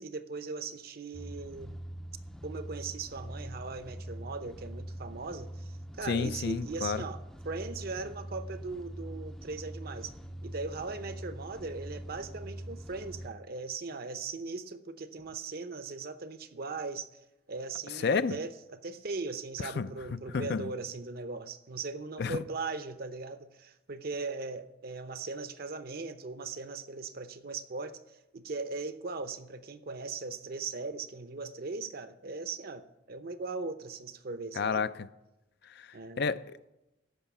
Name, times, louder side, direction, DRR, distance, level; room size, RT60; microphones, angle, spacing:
voice 1, 0.0-1.8 2.4-10.1 10.4-17.1 17.5-34.8 35.9-36.3, right 4 dB, 55° right, 0.8 m, -39 dB
sound 1, 1.1-13.3, right 1 dB, 5° left, 0.5 m, -43 dB
voice 2, 6.1-7.0 18.0-18.4 19.6-20.6 22.2-22.4 34.6-35.1 35.7-35.9 36.2-36.7, left 5 dB, 65° left, 0.5 m, -31 dB
14.5 x 5.6 x 8.2 m
head